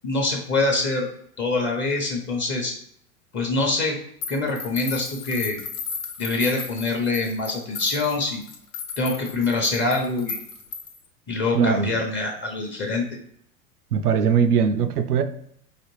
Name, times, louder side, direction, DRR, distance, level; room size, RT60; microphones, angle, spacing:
voice 1, 0.0-1.1 1.4-2.7 3.3-4.0 4.3-5.6 6.2-8.4 9.0-10.4 11.3-13.0, left 3 dB, 25° left, 1 dB, 0.8 m, -24 dB
sound 1, 4.2-11.1, left 5 dB, 70° left, 1.1 m, -35 dB
voice 2, 11.5-11.9 13.9-15.2, right 6 dB, 90° right, 9 dB, 0.6 m, -20 dB
4.9 x 2.4 x 3.1 m, 0.68 s
hypercardioid pair, 100°, 44 cm